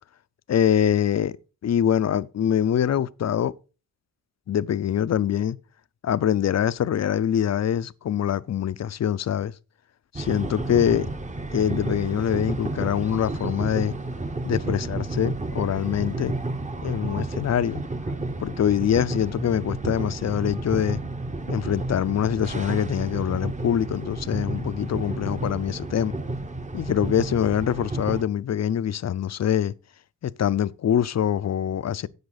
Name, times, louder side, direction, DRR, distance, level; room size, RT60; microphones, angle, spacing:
voice 1, 0.5-1.4 1.6-3.5 4.5-5.6 6.0-9.5 10.1-11.1 11.5-13.9 14.4-16.3 16.8-17.8 18.4-21.0 21.5-26.1 26.7-29.7 30.2-32.1, left 9 dB, 50° left, 0.5 m, -24 dB
sound 1, 10.1-28.2, right 2 dB, 20° right, 1.0 m, -31 dB
10.5 x 7.7 x 4.0 m
cardioid pair, 90°, 36 cm